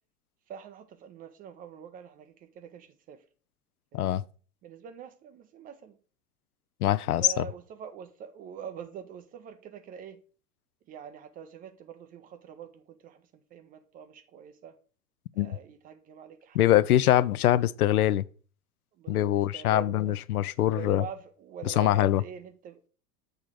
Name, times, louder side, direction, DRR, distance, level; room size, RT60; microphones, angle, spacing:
voice 1, 0.5-3.2 3.9-4.1 4.6-6.0 7.2-10.2 10.9-14.8 15.3-16.6 17.1-17.6 19.0-20.2 20.7-22.9, right 8 dB, 20° right, 0.4 m, -45 dB
voice 2, 6.8-7.4 15.4-15.6 16.5-18.2 19.1-21.0 21.6-22.2, left 13 dB, 70° left, 0.5 m, -23 dB
7.9 x 3.5 x 6.1 m
figure-of-eight pair, 80°, 47 cm